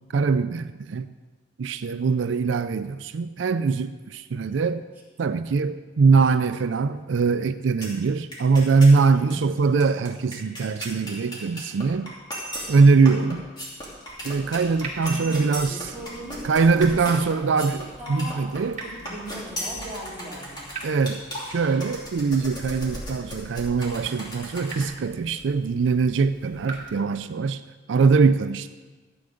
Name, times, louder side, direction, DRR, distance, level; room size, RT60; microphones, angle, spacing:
voice 1, 0.1-1.1 1.6-4.8 5.2-12.1 12.7-13.4 14.2-15.7 16.4-18.8 20.8-21.2 21.5-27.6 27.9-28.7, right 4 dB, 80° right, 11 dB, 0.4 m, -22 dB
sound 1, 7.8-8.0 8.3-9.0 9.3-9.4 9.6-24.9, equal, 25° left, 2.7 m, -36 dB
voice 2, 9.1-9.5 15.0-17.3 18.0-18.5 18.8-20.7, right 1 dB, 10° right, -7 dB, 3.0 m, -39 dB
Water tap faucet / Drip, 14.1-27.0, right 3 dB, 40° right, 2.4 m, -44 dB
13.5 x 8.7 x 5.0 m, 1.3 s
head